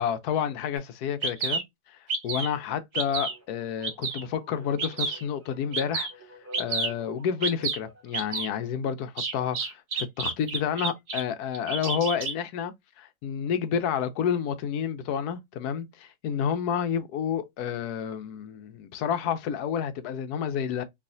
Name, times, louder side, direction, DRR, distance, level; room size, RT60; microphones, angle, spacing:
voice 1, 0.0-1.6 1.9-6.1 6.6-20.8, left 8 dB, 90° left, 1.2 m, -30 dB
Bird vocalization bird call bird song, 0.8-0.9 1.2-1.6 2.1-2.5 2.9-3.3 3.8-4.2 4.8-5.2 5.7-6.1 6.5-6.9 7.4-7.8 8.1-8.5 9.2-11.2 11.5-12.3, right 4 dB, 70° right, 1.4 m, -29 dB
sound 1, 2.9-8.6, equal, 20° right, 0.4 m, -49 dB
3.2 x 2.7 x 2.6 m
omnidirectional pair, 1.6 m